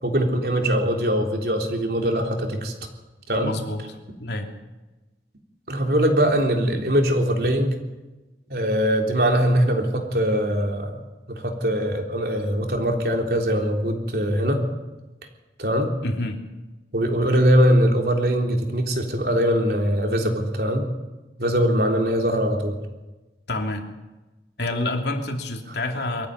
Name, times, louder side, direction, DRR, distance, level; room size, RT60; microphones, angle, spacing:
voice 1, 0.0-2.7 3.3-3.5 5.7-7.8 8.5-11.0 11.3-14.6 15.6-15.9 16.9-20.9 21.4-22.8, equal, 60° right, 3 dB, 3.6 m, -22 dB
voice 2, 3.4-4.5 16.0-16.4 23.5-23.9 24.6-26.3, left 2 dB, 80° left, 3 dB, 3.0 m, -28 dB
23.0 x 14.5 x 9.5 m, 1.1 s
head